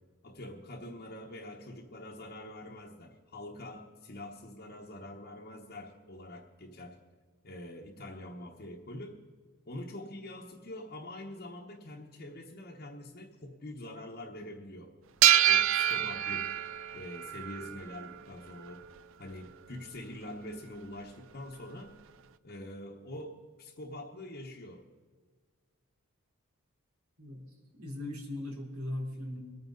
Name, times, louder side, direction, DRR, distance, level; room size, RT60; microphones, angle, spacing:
voice 1, 0.2-7.0 7.4-9.2 9.7-14.9 15.4-16.5 16.9-18.9 19.2-22.0 22.4-24.8, left 1 dB, 45° left, -1 dB, 1.1 m, -45 dB
sound 1, 15.2-18.2, right 11 dB, 60° right, 0.5 m, -26 dB
voice 2, 27.8-29.4, left 1 dB, 80° right, -1 dB, 3.6 m, -38 dB
22.5 x 9.3 x 3.9 m, 1.5 s
head